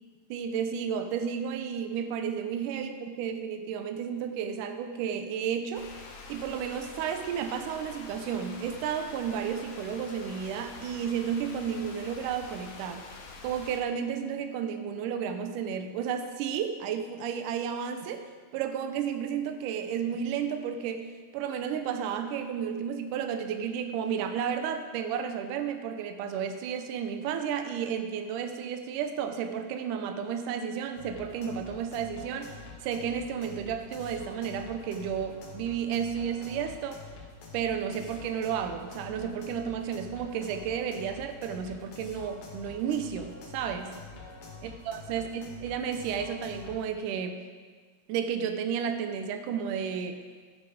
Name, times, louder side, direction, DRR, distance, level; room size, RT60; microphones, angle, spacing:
voice 1, 0.3-5.9 6.3-13.1 13.4-18.3 18.5-37.1 37.5-43.9 44.6-47.4 48.1-50.2, right 7 dB, 80° right, 7 dB, 2.3 m, -32 dB
sound 1, 5.7-13.8, left 4 dB, 60° left, 2.2 m, -46 dB
sound 2, 31.0-46.8, left 4 dB, 80° left, 3.4 m, -47 dB
13.0 x 9.1 x 5.0 m, 1.5 s
omnidirectional pair, 3.8 m